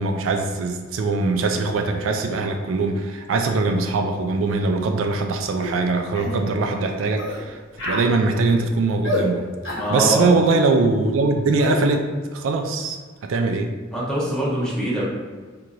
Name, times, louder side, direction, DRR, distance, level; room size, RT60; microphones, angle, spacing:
voice 1, 0.0-9.5 9.9-13.7, right 3 dB, 80° right, 4 dB, 0.4 m, -22 dB
sound 1, 5.6-5.8 6.2-6.4 7.2-7.4 7.8-8.1 9.0-9.3 9.6-9.9 11.6-11.8, left 1 dB, 70° left, 1.0 m, -27 dB
voice 2, 9.7-10.4 13.9-15.0, right 1 dB, 5° left, -8 dB, 1.1 m, -23 dB
4.5 x 2.8 x 2.5 m, 1.4 s
head